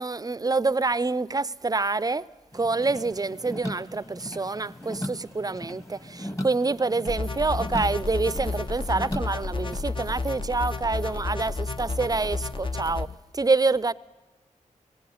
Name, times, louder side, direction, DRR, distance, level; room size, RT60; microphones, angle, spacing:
voice 1, 0.0-2.2 2.5-13.1 13.3-13.9, right 3 dB, 30° right, 0.6 m, -26 dB
sound 1, 2.5-13.2, left 1 dB, 20° left, 1.6 m, -39 dB
sound 2, 7.1-13.0, left 3 dB, 35° left, 0.9 m, -31 dB
19.0 x 17.0 x 9.4 m
cardioid pair, 60°, 14 cm